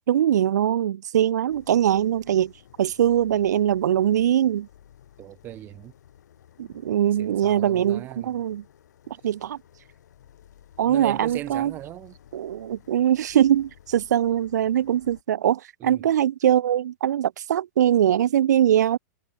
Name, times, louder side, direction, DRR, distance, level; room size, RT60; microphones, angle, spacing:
voice 1, 0.1-2.5 2.8-4.7 6.6-8.6 9.1-9.6 10.8-11.7 12.3-19.0, right 10 dB, 80° right, 0.8 m, -22 dB
sound 1, 1.5-15.2, left 10 dB, 75° left, 5.0 m, -54 dB
voice 2, 5.2-5.9 7.2-8.4 10.9-12.2 15.8-16.0, right 13 dB, 20° right, 1.5 m, -38 dB
supercardioid pair, 165°, 9 cm